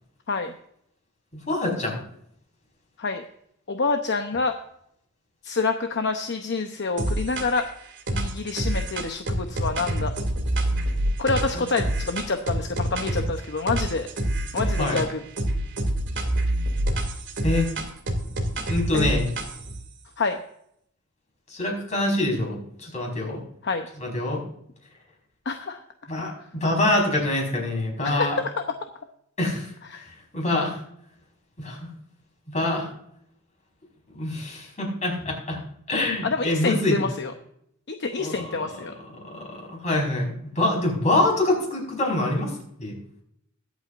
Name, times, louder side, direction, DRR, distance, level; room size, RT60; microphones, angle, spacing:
voice 1, 1.3-2.0 14.8-15.0 17.4-17.7 18.7-19.3 21.5-23.4 24.0-24.4 26.1-28.4 29.4-29.7 30.3-30.8 31.6-31.8 32.5-32.9 34.1-35.6 35.9-37.1 38.1-38.8 39.2-42.5 42.8-42.9, left 1 dB, 35° left, -1 dB, 5.0 m, -25 dB
voice 2, 3.7-4.5 5.4-7.6 8.1-10.1 11.2-14.1 14.5-15.2 18.9-19.2 20.2-20.4 23.6-23.9 25.5-25.8 28.0-28.5 29.9-30.0 36.2-37.3 37.9-38.9, left 4 dB, 55° left, 6 dB, 0.8 m, -27 dB
sound 1, 7.0-7.7 8.1-13.3 13.7-15.1 15.4-19.8, right 1 dB, 60° right, 2.4 m, -27 dB
21.5 x 8.3 x 2.6 m, 0.72 s
head